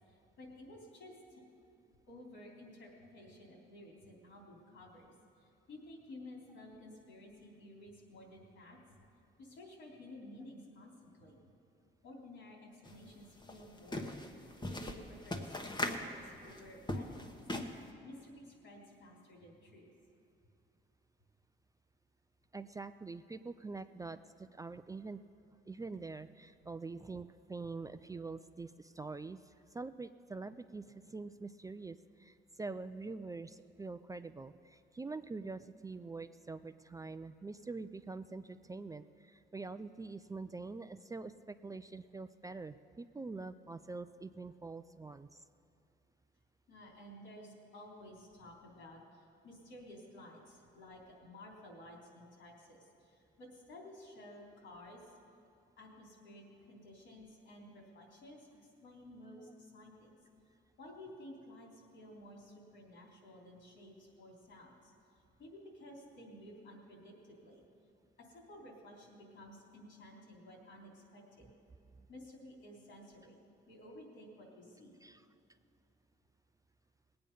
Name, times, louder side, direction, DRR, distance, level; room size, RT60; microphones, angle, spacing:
voice 1, 0.1-1.4 2.1-5.1 5.4-8.8 9.4-11.4 12.0-14.2 14.7-15.5 15.8-17.4 18.0-19.9 46.7-55.0 55.8-58.5 58.8-60.2 60.8-64.9 65.4-67.6 68.2-71.5 72.1-73.4 73.7-75.0, left 1 dB, 75° left, -1 dB, 3.3 m, -54 dB
sound 1, 12.8-12.9 13.3-17.9, left 1 dB, 20° left, 1.2 m, -39 dB
voice 2, 22.5-25.2 25.7-45.4 75.0-75.2, right 3 dB, 15° right, 11 dB, 0.4 m, -45 dB
18.5 x 8.8 x 5.4 m, 2.5 s
cardioid pair, 90°, 20 cm